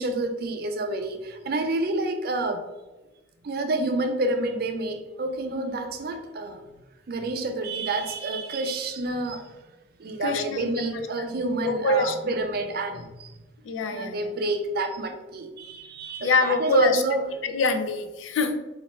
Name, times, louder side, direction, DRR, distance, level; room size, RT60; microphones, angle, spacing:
voice 1, 0.0-2.6 3.4-6.6 7.1-9.5 10.0-13.4 13.9-17.3, right 2 dB, 55° right, 6 dB, 0.4 m, -28 dB
voice 2, 10.2-11.0 11.6-12.1 13.6-14.3 16.2-17.0 17.4-18.6, left 3 dB, 85° left, 8 dB, 0.4 m, -25 dB
4.2 x 2.5 x 3.0 m, 1.1 s
head